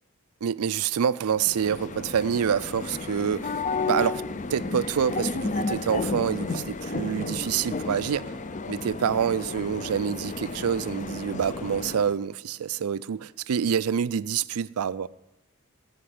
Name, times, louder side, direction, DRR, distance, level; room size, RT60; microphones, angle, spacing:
voice 1, 0.4-3.5 3.9-4.2 4.5-8.3 8.7-15.1, right 7 dB, 80° right, 0.4 m, -27 dB
sound 1, 1.3-12.2, left 3 dB, 35° left, 0.5 m, -32 dB
17.0 x 5.8 x 9.6 m
head